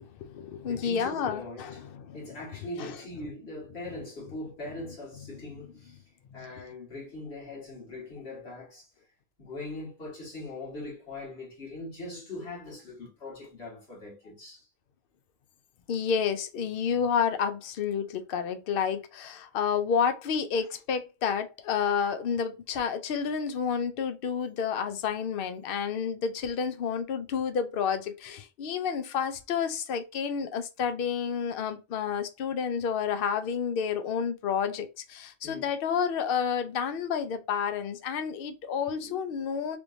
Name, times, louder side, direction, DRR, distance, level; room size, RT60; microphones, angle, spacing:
voice 1, 0.1-2.2 2.8-3.0 6.3-6.5 15.9-39.8, left 7 dB, 65° left, 0.7 m, -30 dB
voice 2, 0.7-1.8 2.1-6.0 6.3-8.9 9.4-14.7 16.9-17.0 35.4-35.7 38.2-38.4 38.8-39.2, left 2 dB, 90° left, 2.0 m, -41 dB
3.4 x 3.1 x 2.6 m
omnidirectional pair, 1.1 m